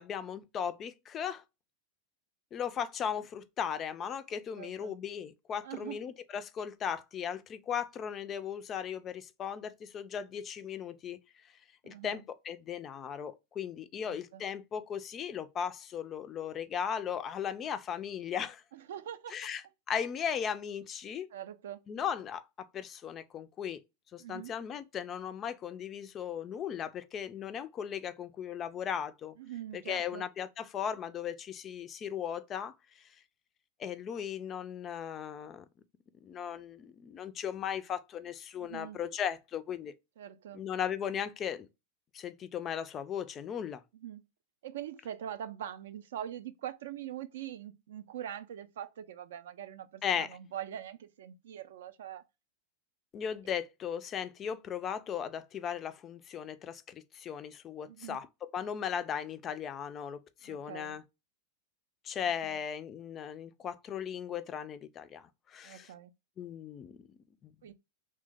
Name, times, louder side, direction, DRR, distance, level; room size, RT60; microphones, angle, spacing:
voice 1, 0.0-1.4 2.5-11.2 11.8-18.6 19.3-21.3 21.9-23.8 24.1-29.3 29.7-33.1 33.8-35.6 36.2-39.9 40.5-41.7 42.1-43.8 50.0-50.4 53.1-61.0 62.0-65.9 66.4-67.1 67.4-67.7, left 8 dB, 30° left, 0.3 m, -37 dB
voice 2, 4.6-4.9 5.6-6.0 11.8-12.2 14.0-14.4 18.7-19.3 21.3-21.8 24.2-24.5 29.4-30.2 38.6-39.0 40.2-40.7 43.9-44.3 44.6-52.2 57.9-58.2 60.4-61.0 62.2-62.6 65.6-66.1 67.6-67.7, right 10 dB, 60° right, 0.3 m, -43 dB
3.1 x 2.0 x 3.2 m
figure-of-eight pair, 90°, 0 cm